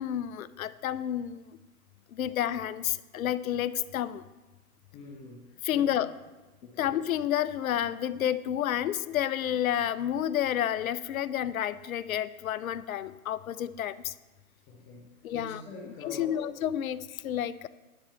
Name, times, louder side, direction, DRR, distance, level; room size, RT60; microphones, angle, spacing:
voice 1, 0.0-1.4 2.1-4.2 5.6-6.1 6.8-14.1 15.2-17.7, left 11 dB, 65° left, 16 dB, 0.6 m, -30 dB
voice 2, 4.9-5.9 6.6-7.0 14.7-15.0 15.3-16.4, left 3 dB, 10° left, 0 dB, 0.5 m, -44 dB
10.5 x 4.3 x 7.0 m, 1.1 s
hypercardioid pair, 140°, 44 cm